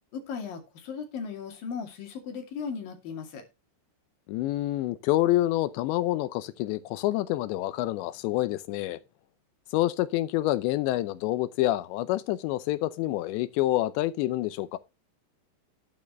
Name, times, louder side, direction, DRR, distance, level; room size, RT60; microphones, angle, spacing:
voice 1, 0.1-3.4, left 6 dB, 55° left, 3.8 m, -37 dB
voice 2, 4.3-9.0 9.7-14.8, left 15 dB, 80° left, 2.9 m, -27 dB
12.0 x 9.4 x 3.2 m
omnidirectional pair, 5.3 m